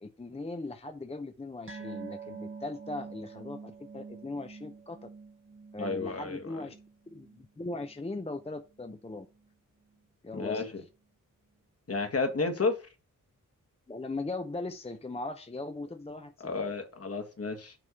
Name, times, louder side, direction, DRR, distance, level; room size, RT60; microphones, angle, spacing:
voice 1, 0.0-5.1 5.7-6.7 7.1-9.3 10.2-10.6 13.9-16.5, left 2 dB, 20° left, 0.7 m, -39 dB
sound 1, 1.7-8.5 8.8-9.0 9.3-9.4, right 5 dB, 40° right, 1.1 m, -46 dB
voice 2, 5.8-6.4 10.3-10.7 11.9-12.8 16.4-17.7, left 3 dB, 50° left, 1.7 m, -31 dB
7.7 x 3.6 x 6.3 m
wide cardioid pair, 115°, 32 cm